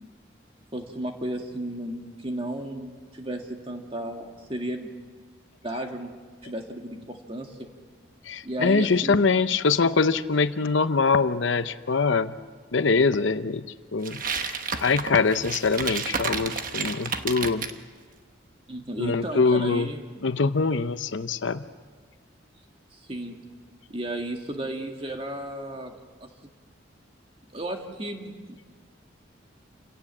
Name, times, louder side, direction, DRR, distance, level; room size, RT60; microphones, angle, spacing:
voice 1, 0.7-4.9 5.6-6.1 6.4-7.6 8.4-9.2 18.7-20.0 22.9-23.4 23.9-25.9 26.2-26.3 27.5-28.6, right 1 dB, 30° right, 3 dB, 2.0 m, -34 dB
voice 2, 8.3-12.4 12.7-13.7 13.9-17.7 19.0-19.9 20.2-21.6, left 4 dB, 70° left, 12 dB, 0.7 m, -23 dB
sound 1, 14.0-17.8, right 5 dB, 45° right, 1.2 m, -31 dB
28.5 x 17.5 x 7.4 m, 1.6 s
head